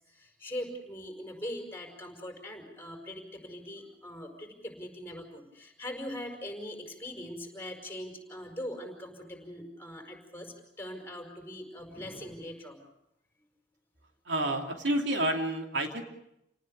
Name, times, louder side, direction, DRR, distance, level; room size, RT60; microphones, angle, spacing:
voice 1, 0.1-12.9, left 1 dB, 15° left, 2 dB, 5.2 m, -41 dB
voice 2, 14.3-16.0, right 1 dB, 85° right, 3 dB, 2.8 m, -29 dB
29.0 x 19.0 x 6.6 m, 0.81 s
head